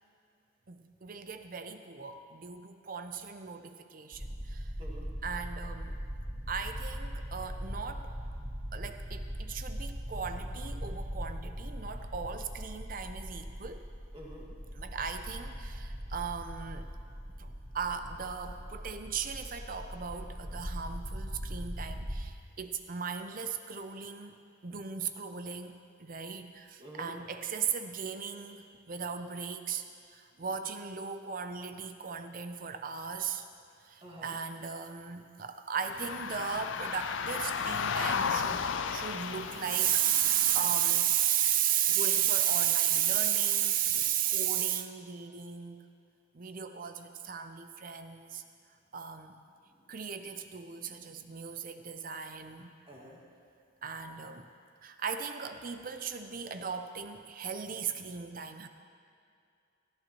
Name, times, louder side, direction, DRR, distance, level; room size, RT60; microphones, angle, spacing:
voice 1, 0.7-4.7 5.2-6.0 6.5-8.1 8.7-13.8 14.7-16.9 17.4-25.7 26.0-33.4 33.8-45.8 46.3-48.4 48.9-49.3 49.9-52.7 53.8-54.5 54.8-58.7, right 9 dB, 45° right, 8 dB, 0.6 m, -35 dB
sound 1, 4.1-22.2, equal, 20° left, 2.6 m, -40 dB
voice 2, 14.1-14.5 26.8-27.1 34.0-34.4 43.8-44.0 50.8-51.4 52.9-53.2, equal, 25° right, -3 dB, 1.9 m, -49 dB
sound 2, 35.8-41.0, left 6 dB, 65° left, 0.4 m, -34 dB
17.5 x 14.0 x 3.0 m, 2.4 s
head